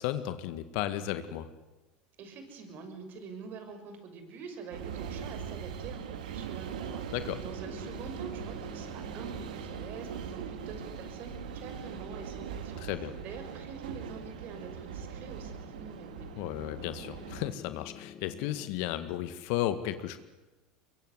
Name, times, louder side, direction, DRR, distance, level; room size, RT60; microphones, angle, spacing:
voice 1, 0.0-1.5 7.1-7.4 12.8-13.1 16.4-20.2, left 13 dB, 65° left, 11 dB, 1.9 m, -34 dB
voice 2, 2.2-16.4, right 5 dB, 50° right, 7 dB, 6.4 m, -46 dB
sound 1, 4.7-17.5, right 8 dB, 85° right, 2.4 m, -41 dB
Piano, 7.7-18.7, left 7 dB, 40° left, 2.8 m, -52 dB
23.0 x 23.0 x 9.8 m, 1.1 s
hypercardioid pair, 95°, 4 cm